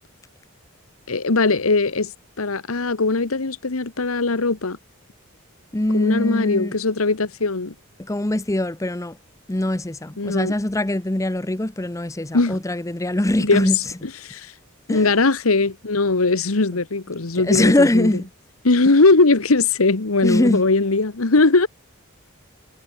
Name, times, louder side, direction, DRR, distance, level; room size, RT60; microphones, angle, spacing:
voice 1, 1.1-2.1 2.4-4.8 5.9-7.7 10.2-10.5 12.3-12.6 13.4-13.8 14.2-14.5 14.9-18.1 18.6-21.7, left 3 dB, 80° left, 1.3 m, -19 dB
voice 2, 5.7-6.8 8.0-9.2 9.5-13.8 14.9-15.1 17.3-18.3 20.2-20.6, left 1 dB, 15° left, 0.7 m, -22 dB
head